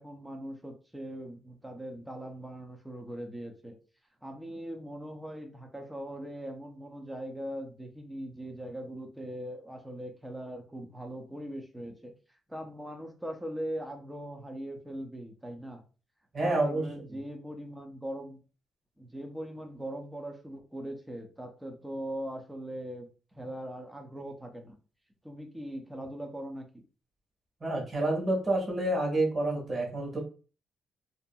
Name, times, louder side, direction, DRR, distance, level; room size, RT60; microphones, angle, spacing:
voice 1, 0.0-3.8 4.2-12.1 12.5-15.8 16.4-18.4 19.0-23.1 23.3-24.8 25.2-26.8, right 1 dB, 5° right, 3 dB, 0.6 m, -40 dB
voice 2, 16.3-16.8 27.6-30.2, right 2 dB, 35° right, -2 dB, 1.3 m, -28 dB
2.7 x 2.5 x 2.2 m, 0.35 s
cardioid pair, 90°, 0 cm